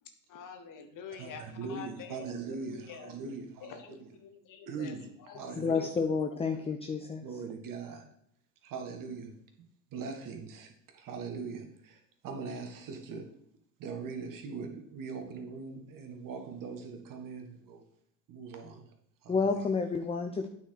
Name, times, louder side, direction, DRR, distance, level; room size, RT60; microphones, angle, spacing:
voice 1, 0.0-3.1 3.6-5.4 5.7-5.9, left 7 dB, 45° left, 1.5 m, -47 dB
voice 2, 1.2-4.1 4.7-5.1 5.3-5.9 7.2-8.1 8.6-9.4 9.9-13.4 13.8-17.8 18.3-18.8 19.2-19.6, right 5 dB, 45° right, 1.7 m, -41 dB
voice 3, 5.6-7.2 19.3-20.5, left 4 dB, 15° left, 0.6 m, -30 dB
9.0 x 4.6 x 4.7 m
hypercardioid pair, 80°, 45 cm